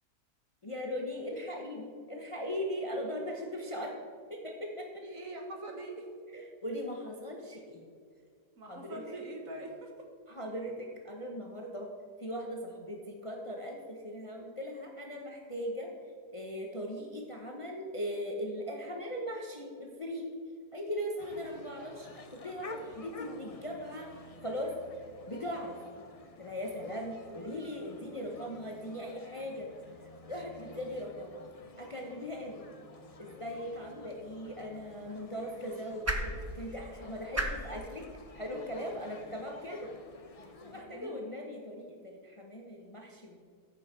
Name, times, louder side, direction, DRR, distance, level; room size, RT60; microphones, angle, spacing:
voice 1, 0.6-3.9 4.3-4.9 6.3-7.9 8.7-9.2 10.3-11.9 12.2-15.9 16.3-20.3 20.7-24.1 24.4-24.7 25.3-25.8 26.4-29.7 30.3-31.4 31.8-32.6 33.2-38.0 38.3-39.9 40.6-43.4, equal, 25° left, 0 dB, 0.8 m, -39 dB
voice 2, 5.0-6.1 8.6-9.9 40.8-41.2, right 2 dB, 55° right, 2 dB, 1.7 m, -43 dB
sound 1, 21.2-40.8, left 3 dB, 50° left, 0.4 m, -51 dB
sound 2, 34.2-40.5, right 1 dB, 15° right, 0.6 m, -41 dB
14.0 x 6.3 x 4.4 m, 2.2 s
omnidirectional pair, 1.7 m